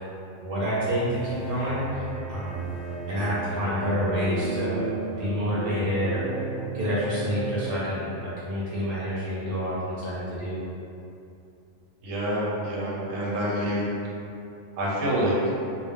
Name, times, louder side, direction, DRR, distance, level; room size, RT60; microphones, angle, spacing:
voice 1, 0.4-2.0 2.3-2.7 3.1-4.8 5.2-6.3 6.7-10.6, equal, 55° right, -9 dB, 0.7 m, -28 dB
sound 1, 0.8-7.7, right 3 dB, 75° left, 0.9 m, -33 dB
voice 2, 12.0-13.9 14.8-15.3, right 1 dB, 85° right, -5 dB, 1.0 m, -27 dB
2.2 x 2.1 x 3.4 m, 2.6 s
omnidirectional pair, 1.3 m